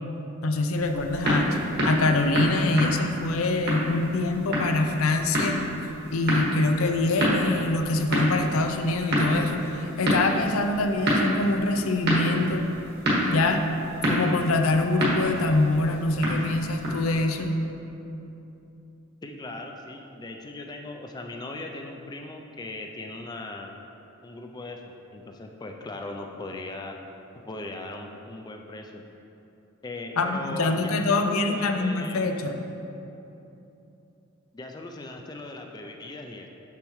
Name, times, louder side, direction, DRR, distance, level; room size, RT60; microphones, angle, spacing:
voice 1, 0.4-1.6 1.8-5.6 6.1-12.6 13.3-13.6 14.1-17.5 30.2-32.6, left 2 dB, 75° left, 5 dB, 0.5 m, -24 dB
sound 1, 0.7-17.2, equal, 50° right, 1.5 m, -28 dB
voice 2, 19.2-23.7 24.2-27.0 27.4-29.0 29.8-32.3 34.5-36.5, left 2 dB, 20° left, 3 dB, 0.4 m, -38 dB
6.9 x 6.6 x 3.1 m, 2.9 s
head